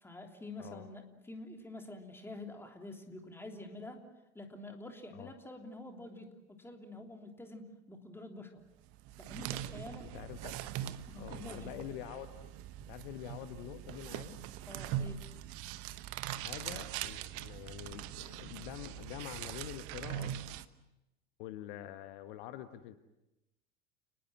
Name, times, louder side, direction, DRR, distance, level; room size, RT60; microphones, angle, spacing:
voice 1, 0.0-4.0 4.3-8.6 9.2-10.1 11.1-11.7 14.7-15.2, left 2 dB, 5° left, 4 dB, 3.4 m, -47 dB
voice 2, 0.6-0.9 5.1-5.3 10.0-10.7 11.1-12.5 12.9-14.4 16.3-20.4 21.4-23.0, left 12 dB, 50° left, 10 dB, 1.3 m, -46 dB
sound 1, 8.9-20.7, right 12 dB, 45° right, 1.1 m, -42 dB
30.0 x 20.5 x 7.9 m, 0.95 s
figure-of-eight pair, 75°, 33 cm